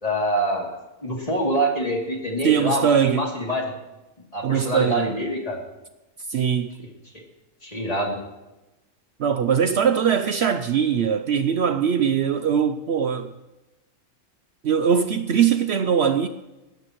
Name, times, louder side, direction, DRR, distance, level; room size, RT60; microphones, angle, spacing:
voice 1, 0.0-3.7 4.3-5.6 6.8-6.9 7.6-8.2, right 1 dB, 30° left, 3.0 m, -25 dB
voice 2, 2.4-3.3 4.4-5.1 6.3-6.7 9.2-13.3 14.6-16.3, right 7 dB, 60° right, 0.9 m, -21 dB
27.0 x 12.5 x 3.1 m
omnidirectional pair, 1.3 m